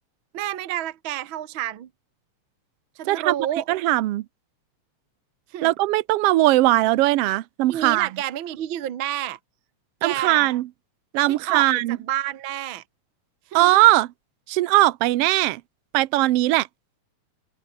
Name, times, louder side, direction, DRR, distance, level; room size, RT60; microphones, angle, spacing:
voice 1, 0.3-1.9 3.0-3.7 5.5-5.7 7.7-9.4 10.0-10.5 11.3-12.8 13.5-13.7, right 12 dB, 55° right, 1.7 m, -29 dB
voice 2, 3.7-4.2 5.6-8.1 10.0-10.7 11.1-12.0 13.5-14.1 14.5-15.6 15.9-16.7, right 17 dB, 70° right, 1.5 m, -19 dB
omnidirectional pair, 3.4 m